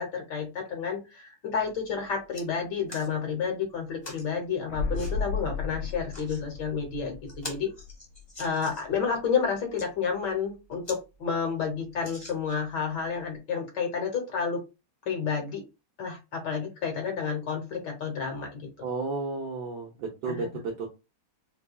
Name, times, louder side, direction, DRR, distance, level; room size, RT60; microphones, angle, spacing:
voice 1, 0.0-7.7 8.4-14.6 15.1-15.6 16.0-18.7 20.3-20.6, left 6 dB, 60° left, 2 dB, 1.3 m, -30 dB
sound 1, 1.7-1.8 2.1-2.5 2.9-3.1 4.0-4.3 4.9-5.1 5.9-6.4 6.9-7.0 7.3-8.9 9.6-9.9 10.4-10.5 10.8-11.0 11.4-11.5 12.0-12.7 13.4-13.5, left 1 dB, 25° left, 0.5 m, -43 dB
sound 2, 4.7-8.4 8.7-8.8, left 4 dB, 80° left, 1.5 m, -34 dB
voice 2, 18.8-20.9, right 3 dB, 70° right, -1 dB, 1.0 m, -33 dB
4.7 x 2.3 x 2.2 m, 0.27 s
omnidirectional pair, 2.4 m